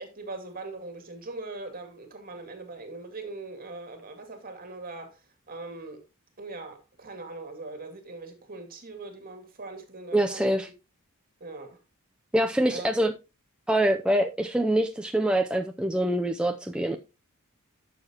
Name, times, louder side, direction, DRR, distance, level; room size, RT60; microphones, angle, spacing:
voice 1, 0.0-6.0 6.4-10.6 11.4-11.8 12.7-12.9, right 3 dB, 40° right, 2.3 m, -41 dB
voice 2, 10.1-10.7 12.3-13.1 13.7-17.0, right 1 dB, 5° right, 0.5 m, -25 dB
11.5 x 6.9 x 2.9 m
head